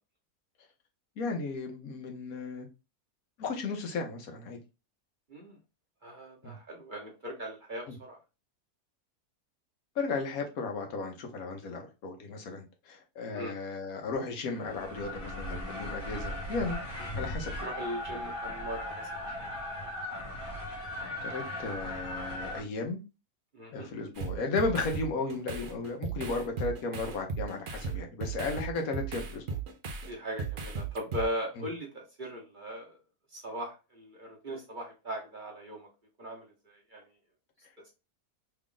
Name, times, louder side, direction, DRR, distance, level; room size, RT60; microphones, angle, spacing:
voice 1, 1.2-2.7 3.4-4.6 6.4-6.5 7.9-8.0 9.9-16.8 17.1-17.5 20.7-23.0 23.7-29.4 31.6-31.7, left 3 dB, 75° left, 4 dB, 1.2 m, -35 dB
voice 2, 6.0-8.2 13.3-13.5 17.6-19.3 23.5-23.9 30.0-33.0 33.3-35.9 36.2-37.0, equal, 40° right, -1 dB, 0.9 m, -39 dB
sound 1, 14.5-22.6, left 1 dB, 40° left, 1.2 m, -38 dB
sound 2, 24.2-30.1 30.4-31.2, right 5 dB, 55° right, 0.6 m, -36 dB
3.4 x 2.4 x 3.6 m, 0.29 s
omnidirectional pair, 1.6 m